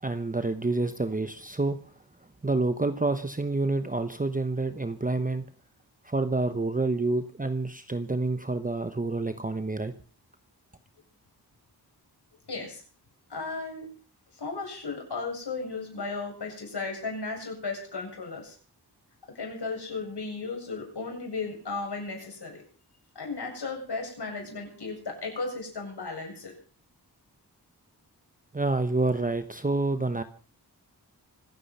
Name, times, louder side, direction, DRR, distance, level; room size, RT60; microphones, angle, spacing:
voice 1, 0.0-1.8 2.4-5.5 6.0-9.9 28.5-30.2, right 2 dB, 20° right, 9 dB, 1.0 m, -28 dB
voice 2, 12.5-12.8 13.3-13.8 14.3-18.6 19.3-22.6 23.1-26.5, left 3 dB, 80° left, 1 dB, 7.8 m, -35 dB
25.5 x 9.4 x 5.6 m, 0.42 s
wide cardioid pair, 110°, 40 cm